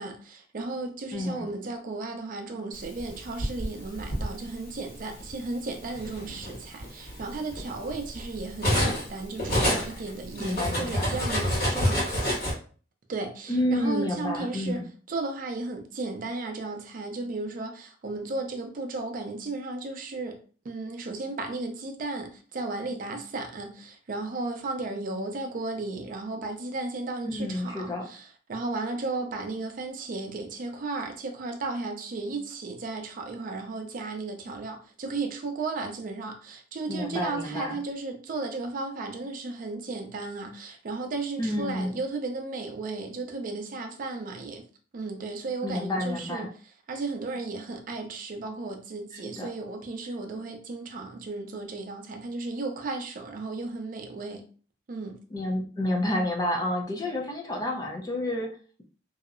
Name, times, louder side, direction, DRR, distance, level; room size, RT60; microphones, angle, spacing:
voice 1, 0.0-12.3 13.1-14.8 15.1-20.4 20.6-44.6 44.9-46.5 46.9-54.4 54.9-55.2, right 3 dB, 50° right, 0.4 m, -34 dB
voice 2, 1.1-1.5 10.4-11.2 13.5-14.9 27.2-28.1 36.9-37.8 41.4-41.9 45.6-46.5 49.1-49.5 55.3-58.8, left 1 dB, 20° left, 0.4 m, -30 dB
Cutlery silverware, 3.0-4.3 5.2-5.4 5.8-9.1 9.4-12.5, equal, 55° left, 1.4 m, -28 dB
2.7 x 2.0 x 2.4 m
head